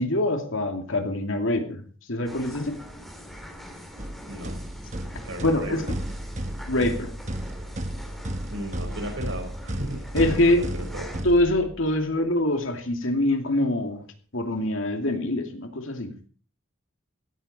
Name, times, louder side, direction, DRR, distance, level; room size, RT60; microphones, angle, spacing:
voice 1, 0.0-2.8 5.4-5.8 6.7-7.1 10.1-10.6 11.2-14.1 14.3-16.1, left 1 dB, 65° left, 5 dB, 2.6 m, -24 dB
sound 1, 2.2-11.2, equal, ahead, 3.5 m, -43 dB
sound 2, 4.0-12.0, right 1 dB, 35° right, 1.4 m, -33 dB
voice 2, 4.3-4.6 5.2-5.8 8.5-11.1, equal, 65° right, 5 dB, 4.9 m, -35 dB
16.5 x 14.5 x 4.4 m, 0.42 s
head